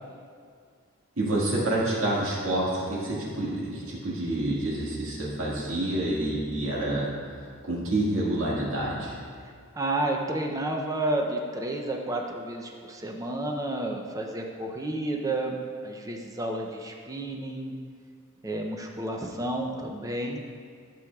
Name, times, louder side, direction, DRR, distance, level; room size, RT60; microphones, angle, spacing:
voice 1, 1.2-9.2, right 1 dB, 65° right, -6 dB, 1.9 m, -28 dB
voice 2, 9.8-15.6 15.8-17.7 18.4-20.4, right 1 dB, 15° right, 1 dB, 0.5 m, -31 dB
11.5 x 6.1 x 2.3 m, 2.2 s
head